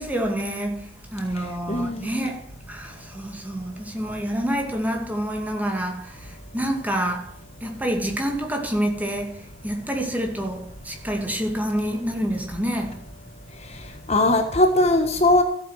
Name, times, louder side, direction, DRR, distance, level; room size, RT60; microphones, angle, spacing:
voice 1, 0.0-7.4 7.6-13.0, equal, 10° right, 2.2 m, -28 dB
voice 2, 1.7-2.1 14.1-15.4, left 1 dB, 35° left, 1.4 m, -19 dB
14.5 x 8.8 x 6.4 m
head